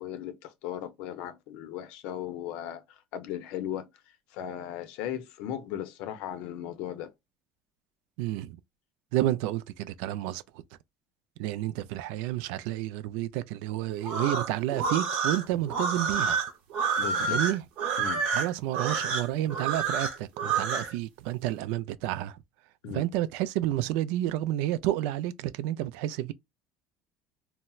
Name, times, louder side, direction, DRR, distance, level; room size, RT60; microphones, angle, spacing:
voice 1, 0.0-3.9 4.3-7.1 17.0-17.4 18.0-18.2 22.8-23.1, left 10 dB, 65° left, 0.5 m, -37 dB
voice 2, 8.2-8.6 9.1-10.6 11.4-16.4 17.2-17.6 18.3-22.4 22.9-26.3, right 14 dB, 80° right, 0.3 m, -30 dB
sound 1, 14.0-20.9, right 5 dB, 60° right, 0.9 m, -28 dB
4.2 x 2.0 x 2.3 m
cardioid pair, 160°, 2 cm